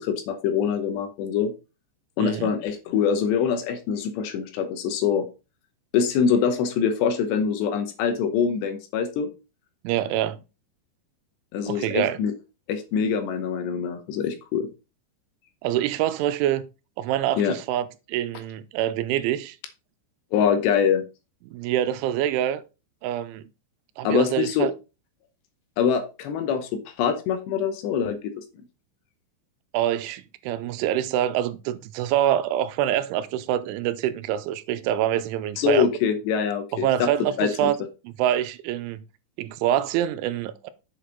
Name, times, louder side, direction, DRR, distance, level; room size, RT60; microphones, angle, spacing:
voice 1, 0.0-1.5 2.2-5.3 5.9-9.3 11.5-12.3 12.7-14.7 17.4-17.5 20.3-21.0 24.0-24.7 25.8-28.4 35.6-37.1 37.4-37.7, left 7 dB, 80° left, 2.9 m, -24 dB
voice 2, 2.2-2.5 9.8-10.4 11.7-12.2 15.6-16.6 17.0-19.6 21.5-22.6 23.0-23.5 24.0-24.7 29.7-35.9 36.8-37.8 38.0-39.0 39.4-40.7, right 11 dB, 85° right, 3.1 m, -25 dB
7.8 x 6.5 x 3.9 m
omnidirectional pair, 5.3 m